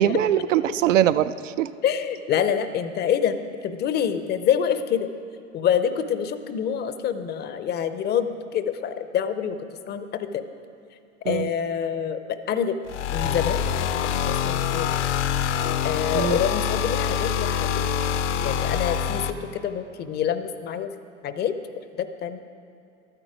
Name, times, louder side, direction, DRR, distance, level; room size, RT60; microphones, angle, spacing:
voice 1, 0.0-1.7 11.2-11.5 16.1-16.4, right 11 dB, 75° right, 13 dB, 0.5 m, -22 dB
voice 2, 1.8-5.1 5.5-10.4 11.2-12.8 13.1-14.9 15.8-17.9 18.4-20.9 21.2-21.5 21.9-22.4, left 8 dB, 25° left, 11 dB, 0.5 m, -26 dB
sound 1, 12.9-19.3, left 8 dB, 65° left, 0.7 m, -25 dB
12.5 x 9.0 x 4.9 m, 2.6 s
hypercardioid pair, 90°, 38 cm